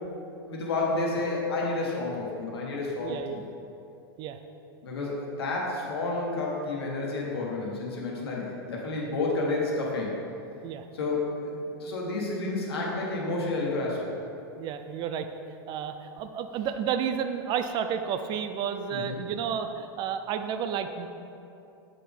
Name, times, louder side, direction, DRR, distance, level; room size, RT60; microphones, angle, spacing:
voice 1, 0.5-3.2 4.8-10.1 10.9-14.2 18.9-19.2, left 2 dB, 80° left, -3 dB, 1.4 m, -30 dB
voice 2, 3.0-3.4 4.2-4.4 5.0-5.1 10.6-10.9 14.6-15.3 15.7-21.1, right 8 dB, 35° right, 8 dB, 0.4 m, -31 dB
7.3 x 4.2 x 3.5 m, 2.7 s
hypercardioid pair, 115°, 13 cm